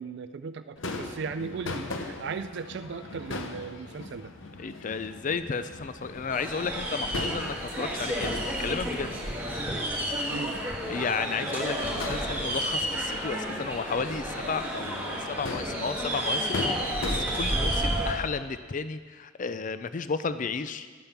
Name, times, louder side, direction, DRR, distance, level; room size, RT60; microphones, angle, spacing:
voice 1, 0.0-4.3 10.3-10.6 17.6-17.7, right 5 dB, 60° right, 12 dB, 0.4 m, -37 dB
Crowd / Fireworks, 0.8-18.1, left 3 dB, 85° left, 1.0 m, -39 dB
voice 2, 4.6-9.1 10.9-20.9, left 5 dB, 40° left, 12 dB, 0.4 m, -33 dB
sound 1, 6.3-18.1, right 1 dB, 10° right, 2.1 m, -31 dB
11.5 x 8.9 x 5.9 m, 1.5 s
head